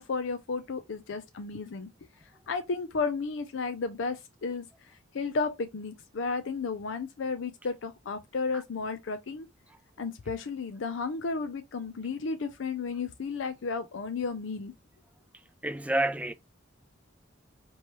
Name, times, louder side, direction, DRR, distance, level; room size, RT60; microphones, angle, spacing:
voice 1, 0.0-1.9 2.5-9.5 10.0-14.7, left 4 dB, 75° left, 0.5 m, -33 dB
voice 2, 15.6-16.3, right 1 dB, 5° right, 0.4 m, -28 dB
4.5 x 3.0 x 2.9 m
head